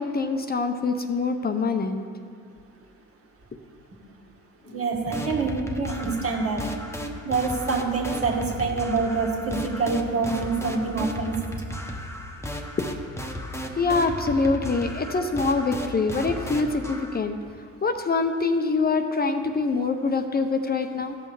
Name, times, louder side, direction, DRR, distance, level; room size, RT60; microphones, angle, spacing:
voice 1, 0.0-2.1 4.7-4.8 12.8-12.9 13.8-17.4 17.8-21.2, left 4 dB, 30° left, 6 dB, 0.7 m, -25 dB
voice 2, 4.7-6.6 7.2-11.3, right 4 dB, 50° right, 1 dB, 2.0 m, -26 dB
sound 1, 5.1-17.2, equal, 10° left, 1.1 m, -35 dB
15.5 x 5.5 x 4.8 m, 2.3 s
cardioid pair, 90°, 30 cm